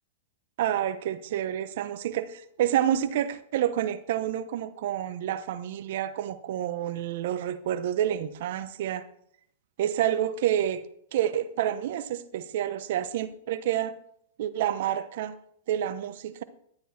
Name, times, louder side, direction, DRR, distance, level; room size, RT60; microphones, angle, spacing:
voice 1, 0.6-9.1 9.8-10.8 11.1-13.9 14.4-15.4 15.7-16.4, right 11 dB, 65° right, 0.9 m, -28 dB
11.5 x 9.1 x 4.4 m
hypercardioid pair, 120°, 0 cm